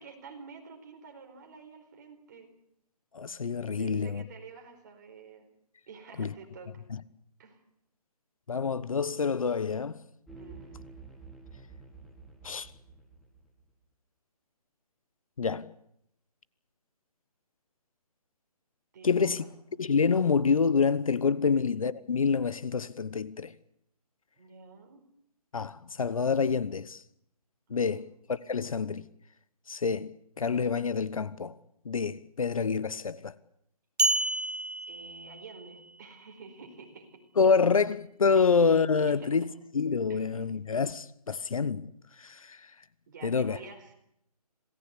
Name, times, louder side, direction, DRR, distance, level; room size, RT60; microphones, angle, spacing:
voice 1, 0.0-2.5 3.7-5.5 5.9-6.7 7.4-7.6 10.4-10.8 18.9-19.5 21.4-21.5 24.4-25.0 27.7-28.1 34.9-37.2 38.9-39.3 40.1-40.3 43.1-43.9, right 5 dB, 30° right, 4.5 m, -49 dB
voice 2, 3.1-4.2 6.2-6.3 6.9-7.0 8.5-10.0 12.4-12.7 15.4-15.7 19.0-19.4 19.8-23.5 25.5-27.0 27.7-29.0 29.7-31.5 31.8-33.3 37.4-39.4 39.7-41.9 42.2-42.6 43.2-43.6, left 5 dB, 60° left, 1.1 m, -27 dB
sound 1, 10.3-13.7, right 4 dB, ahead, 1.4 m, -49 dB
sound 2, 34.0-35.8, right 2 dB, 80° right, 2.0 m, -30 dB
27.0 x 19.0 x 8.4 m
hypercardioid pair, 170°, 20 cm